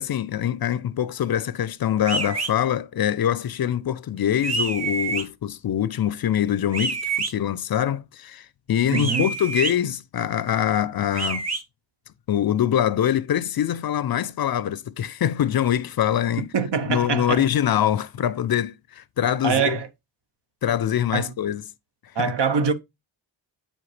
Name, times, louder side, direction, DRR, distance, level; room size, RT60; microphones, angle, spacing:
voice 1, 0.0-11.5 12.3-16.5 16.9-19.8 20.6-21.6 22.2-22.3, left 10 dB, 55° left, 0.5 m, -24 dB
sound 1, 2.0-2.5 4.4-5.2 6.7-7.3 8.9-9.7 11.1-11.6, right 4 dB, 35° right, 0.8 m, -27 dB
voice 2, 8.9-9.3 16.5-17.4 19.4-19.9 21.1-21.3 22.2-22.7, right 6 dB, 65° right, 0.8 m, -23 dB
8.8 x 4.9 x 3.1 m
wide cardioid pair, 125°, 45 cm